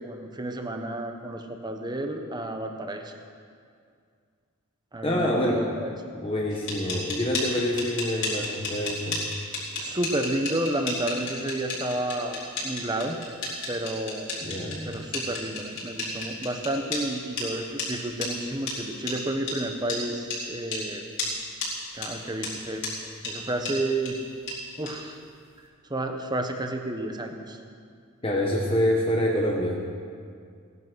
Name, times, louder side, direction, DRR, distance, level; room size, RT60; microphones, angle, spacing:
voice 1, 0.0-3.1 4.9-6.1 9.8-13.2 13.7-14.3 14.8-21.0 21.9-22.9 23.2-24.2 24.8-25.2 25.9-27.6, right 1 dB, 20° right, 5 dB, 1.1 m, -31 dB
voice 2, 5.0-5.7 6.2-9.2 14.4-14.9 28.2-29.8, left 1 dB, 25° left, -2 dB, 1.2 m, -26 dB
sound 1, 6.5-17.0 17.4-17.5 17.8-17.9 18.2-18.3 18.7-18.8 19.1-19.2 19.5-19.6 19.9-20.0 20.3-20.4 20.7-20.8 21.2-21.3 21.6-21.7 22.0-22.1 22.4-22.5 22.8-22.9 23.2-23.3 23.6-23.7 24.0-24.1 24.5-24.6 24.9-25.0, left 3 dB, 55° left, 4.4 m, -31 dB
17.5 x 11.0 x 6.3 m, 2.2 s
head